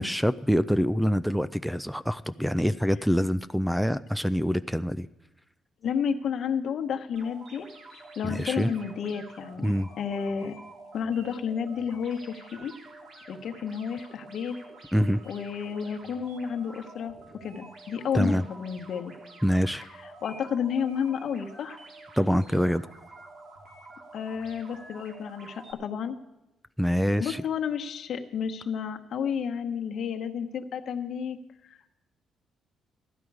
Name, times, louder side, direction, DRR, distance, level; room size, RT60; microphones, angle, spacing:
voice 1, 0.0-5.1 8.2-8.7 9.6-9.9 14.9-15.2 18.1-18.4 19.4-19.8 22.2-22.9 26.8-27.4, equal, ahead, 14 dB, 0.4 m, -25 dB
voice 2, 5.8-7.7 8.2-10.5 10.9-12.7 13.3-14.6 15.3-17.2 17.4-19.1 20.2-21.8 24.1-26.2 27.2-31.4, left 7 dB, 65° left, 5 dB, 1.1 m, -31 dB
sound 1, 7.2-25.7, right 2 dB, 60° right, 3.2 m, -48 dB
15.0 x 12.0 x 4.8 m, 0.97 s
cardioid pair, 90°, 0 cm